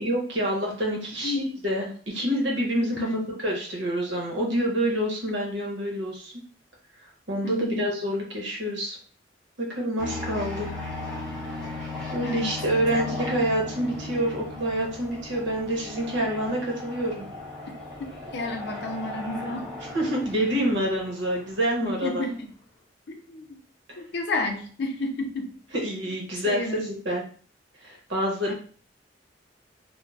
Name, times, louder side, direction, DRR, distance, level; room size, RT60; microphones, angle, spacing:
voice 1, 0.0-6.3 7.3-9.0 9.6-10.7 11.3-11.7 12.1-17.3 19.9-22.3 25.7-27.2 27.8-28.5, right 1 dB, 75° right, -1 dB, 0.9 m, -27 dB
voice 2, 3.0-3.3 7.4-7.9 12.2-13.0 18.3-19.7 20.2-20.3 21.8-22.5 23.1-23.6 24.0-25.5 26.4-26.9 28.5-28.6, left 2 dB, 65° left, 4 dB, 0.5 m, -31 dB
sound 1, 10.0-22.1, left 2 dB, 5° left, 1.0 m, -37 dB
2.4 x 2.1 x 3.2 m, 0.43 s
head